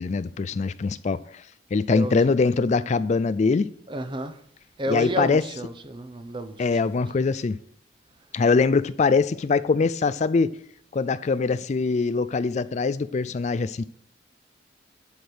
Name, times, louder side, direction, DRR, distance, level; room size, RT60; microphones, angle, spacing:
voice 1, 0.0-1.4 1.7-3.7 4.9-5.4 6.6-7.6 8.3-10.5 10.9-13.8, left 4 dB, 40° left, 0.4 m, -23 dB
voice 2, 1.9-2.3 3.9-4.4 4.8-6.9, right 1 dB, 25° right, 0.8 m, -31 dB
11.5 x 5.2 x 6.3 m
head